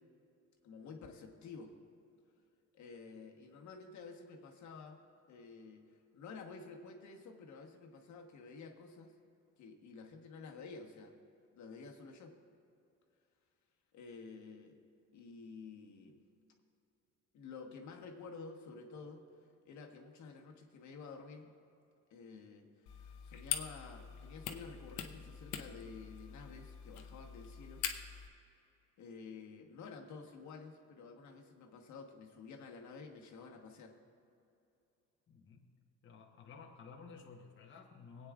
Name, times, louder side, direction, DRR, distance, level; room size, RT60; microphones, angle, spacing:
voice 1, 0.6-1.7 2.7-5.0 5.3-5.8 6.1-9.1 9.6-11.1 11.5-12.3 13.9-14.8 15.1-16.2 17.3-19.2 19.6-21.5 22.1-27.8 29.0-33.9, left 4 dB, 65° left, 2 dB, 1.2 m, -51 dB
sound 1, 22.9-28.3, left 9 dB, 85° left, 0.8 m, -44 dB
voice 2, 35.3-35.7 36.0-38.3, left 5 dB, 40° left, 1 dB, 0.9 m, -54 dB
24.5 x 8.7 x 2.4 m, 2.6 s
cardioid pair, 120°, 31 cm